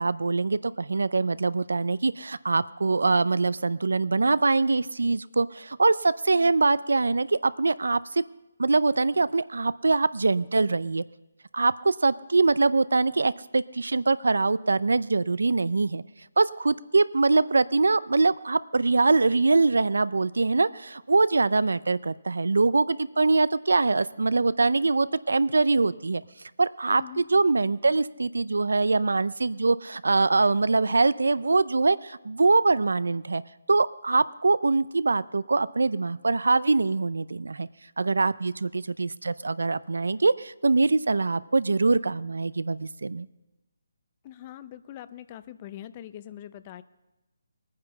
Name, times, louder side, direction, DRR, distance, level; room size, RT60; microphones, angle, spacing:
voice 1, 0.0-8.2 8.6-11.0 11.5-16.0 16.4-26.2 26.6-33.4 33.7-37.7 38.0-43.3, right 3 dB, 85° right, 17 dB, 0.5 m, -23 dB
voice 2, 26.9-27.3 44.2-46.8, left 11 dB, 25° left, 14 dB, 0.5 m, -42 dB
19.0 x 9.5 x 5.7 m, 1.0 s
hypercardioid pair, 160°, 0 cm